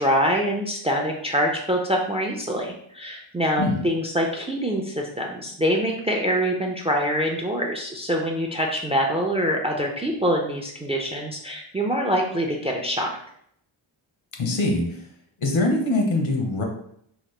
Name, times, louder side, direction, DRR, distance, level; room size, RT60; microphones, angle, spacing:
voice 1, 0.0-13.1, equal, 15° right, 1 dB, 0.3 m, -25 dB
voice 2, 14.4-14.8 15.4-16.6, left 2 dB, 70° left, 2 dB, 0.9 m, -22 dB
2.9 x 2.1 x 3.2 m, 0.69 s
cardioid pair, 75°, 49 cm